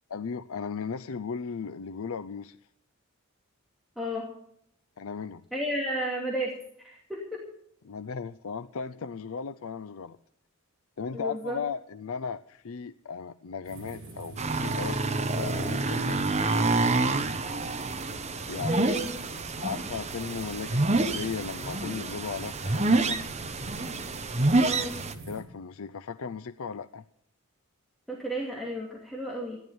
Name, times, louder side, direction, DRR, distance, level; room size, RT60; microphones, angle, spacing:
voice 1, 0.1-2.6 5.0-5.4 7.8-10.2 11.0-16.2 18.5-18.9 19.6-23.2 25.3-27.0, left 5 dB, 70° left, 11 dB, 0.5 m, -36 dB
voice 2, 4.0-4.3 5.5-6.5 6.8-7.4 11.1-11.6 18.6-19.1 24.6-25.0 28.1-29.6, equal, ahead, -3 dB, 2.4 m, -32 dB
sound 1, 13.6-25.4, right 2 dB, 60° right, 5.1 m, -46 dB
sound 2, 14.4-25.1, right 2 dB, 30° right, 1.0 m, -28 dB
15.0 x 11.0 x 7.0 m, 0.71 s
head